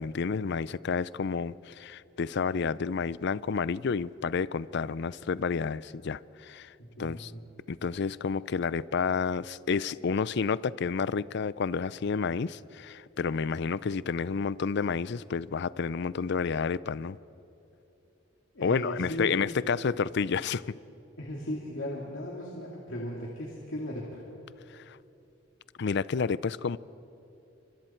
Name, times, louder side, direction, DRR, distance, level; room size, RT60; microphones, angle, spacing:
voice 1, 0.0-6.7 7.0-7.3 7.7-17.2 18.6-20.7 24.7-25.0 25.8-26.8, left 5 dB, 60° left, 0.5 m, -30 dB
voice 2, 6.8-7.4 18.5-19.5 21.2-24.2, equal, 85° left, 2.7 m, -37 dB
29.5 x 25.5 x 4.5 m
head